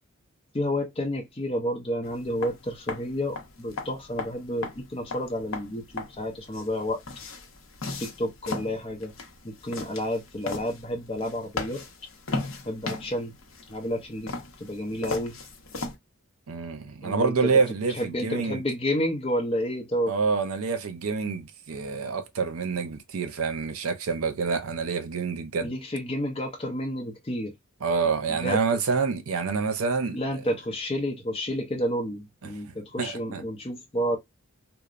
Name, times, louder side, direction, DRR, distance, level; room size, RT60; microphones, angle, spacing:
voice 1, 0.5-7.0 8.0-9.1 9.4-11.8 12.7-13.3 13.7-14.3 14.6-15.4 17.0-17.3 18.0-20.1 25.6-27.5 28.4-28.6 30.1-34.2, equal, 25° left, 0.6 m, -30 dB
sound 1, 2.0-16.0, left 3 dB, 65° left, 0.7 m, -37 dB
voice 2, 16.5-18.6 20.1-25.7 27.8-30.4 32.4-33.4, right 4 dB, 85° right, 0.6 m, -27 dB
3.0 x 2.0 x 2.4 m
head